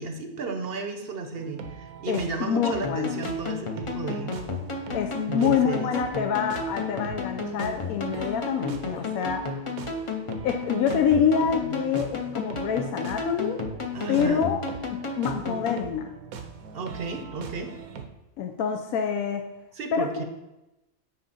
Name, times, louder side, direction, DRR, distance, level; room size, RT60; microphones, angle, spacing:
voice 1, 0.0-4.3 5.3-5.9 11.6-11.8 13.9-14.5 16.7-17.7 19.7-20.2, right 4 dB, 50° right, 6 dB, 0.8 m, -33 dB
sound 1, 1.3-18.1, right 6 dB, 80° right, 1.2 m, -42 dB
voice 2, 2.1-3.2 4.9-9.4 10.4-13.6 14.1-14.6 14.9-16.1 18.4-19.5 19.9-20.2, left 7 dB, 85° left, 5 dB, 1.1 m, -26 dB
sound 2, 2.6-15.9, left 3 dB, 30° left, 0.6 m, -33 dB
8.1 x 5.1 x 4.2 m, 0.96 s
omnidirectional pair, 1.5 m